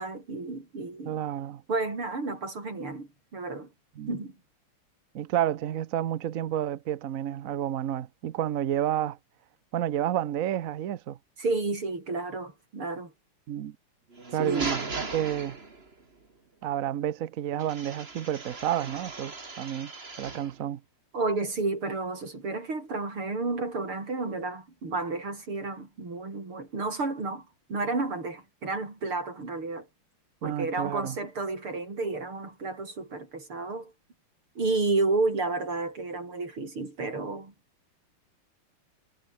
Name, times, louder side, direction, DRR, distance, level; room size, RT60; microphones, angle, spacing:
voice 1, 0.0-1.2 1.7-3.7 4.1-4.4 11.4-13.1 14.4-14.7 21.1-29.9 30.4-33.9 34.6-37.5, right 3 dB, 75° right, 6.9 m, -31 dB
voice 2, 1.0-1.6 4.0-4.1 5.1-9.2 9.7-11.2 13.5-13.8 14.3-15.6 16.6-19.9 20.2-20.8 30.4-31.2, right 11 dB, 60° right, 0.9 m, -30 dB
sound 1, 14.1-16.0 17.6-20.6, right 3 dB, 25° right, 2.9 m, -38 dB
omnidirectional pair, 2.4 m